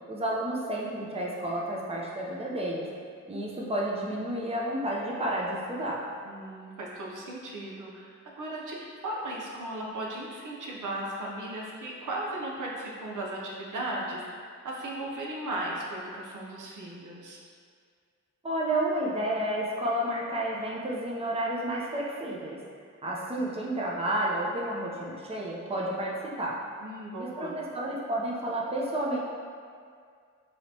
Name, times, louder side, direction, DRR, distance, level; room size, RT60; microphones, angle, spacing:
voice 1, 0.1-2.9 3.3-6.0 18.4-22.6 23.0-26.6 27.2-29.2, right 1 dB, 20° right, -4 dB, 0.6 m, -31 dB
voice 2, 6.2-17.4 26.8-27.6, right 1 dB, 75° right, -3 dB, 0.8 m, -36 dB
4.9 x 3.0 x 2.8 m, 2.1 s
cardioid pair, 80°, 31 cm